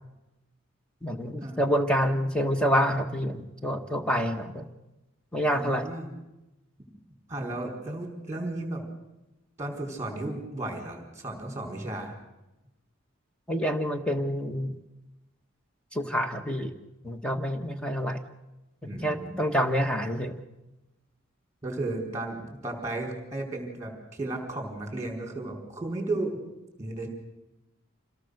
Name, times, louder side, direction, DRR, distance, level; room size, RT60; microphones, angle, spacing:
voice 1, 1.0-4.7 5.3-5.9 13.5-14.8 15.9-16.7 17.0-18.2 18.8-20.4, equal, 5° left, 5 dB, 1.3 m, -27 dB
voice 2, 5.5-6.1 7.3-8.8 9.6-12.1 18.8-19.4 21.6-26.4 26.8-27.1, right 2 dB, 15° right, 2 dB, 4.5 m, -34 dB
26.5 x 18.0 x 6.6 m, 1.0 s
head